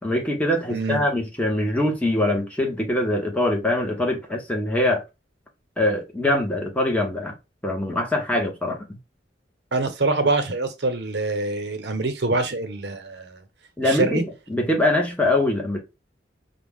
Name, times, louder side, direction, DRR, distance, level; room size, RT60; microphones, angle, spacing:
voice 1, 0.0-5.0 5.8-7.3 7.6-8.8 13.8-15.8, left 1 dB, 10° left, 1.1 m, -23 dB
voice 2, 0.7-1.0 9.7-13.4 13.8-14.2, right 3 dB, 70° right, 0.9 m, -25 dB
5.5 x 2.3 x 3.6 m
head